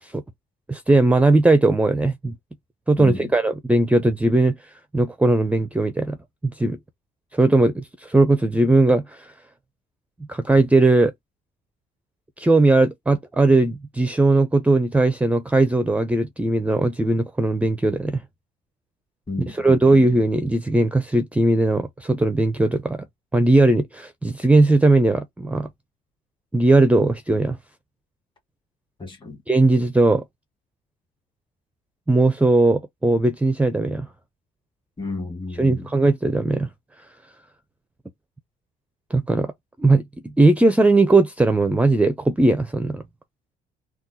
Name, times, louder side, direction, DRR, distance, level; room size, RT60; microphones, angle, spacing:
voice 1, 0.7-2.4 2.9-4.6 4.9-6.2 6.4-6.8 7.3-9.3 10.3-11.1 12.4-18.2 19.5-23.0 23.3-25.7 26.5-27.6 29.5-30.2 32.1-34.1 35.6-36.7 39.1-39.5 39.8-43.0, right 2 dB, 10° right, 0.5 m, -18 dB
voice 2, 3.0-3.3 19.3-20.0 29.0-29.4 35.0-35.9, left 3 dB, 30° left, 2.0 m, -32 dB
3.6 x 2.3 x 2.7 m
cardioid pair, 110°, 17 cm